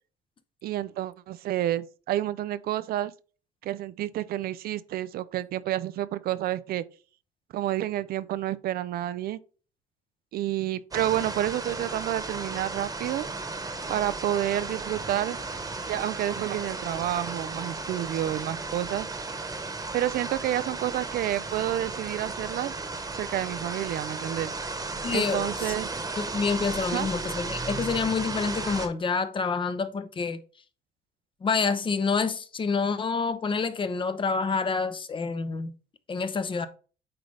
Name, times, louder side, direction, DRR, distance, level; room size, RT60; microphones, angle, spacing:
voice 1, 0.6-3.1 3.6-6.8 7.5-9.4 10.3-13.3 13.9-15.4 15.9-19.1 19.9-22.7 23.2-24.5 25.1-25.9 26.8-27.1, right 13 dB, 65° right, 0.5 m, -29 dB
sound 1, 10.9-28.9, right 3 dB, 20° right, 1.2 m, -35 dB
voice 2, 25.0-25.7 26.2-30.4 31.4-35.7 36.1-36.7, left 5 dB, 30° left, 0.8 m, -28 dB
8.8 x 3.9 x 3.3 m
cardioid pair, 110°, 17 cm